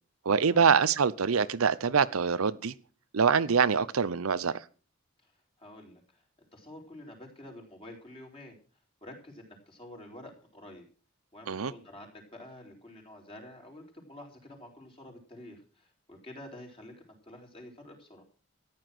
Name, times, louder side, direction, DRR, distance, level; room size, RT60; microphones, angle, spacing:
voice 1, 0.2-2.7 3.1-4.6 11.5-11.7, right 6 dB, 80° right, 0.7 m, -25 dB
voice 2, 5.6-8.6 9.0-10.9 11.3-18.2, left 1 dB, 25° left, 4.3 m, -49 dB
14.0 x 9.6 x 6.1 m
head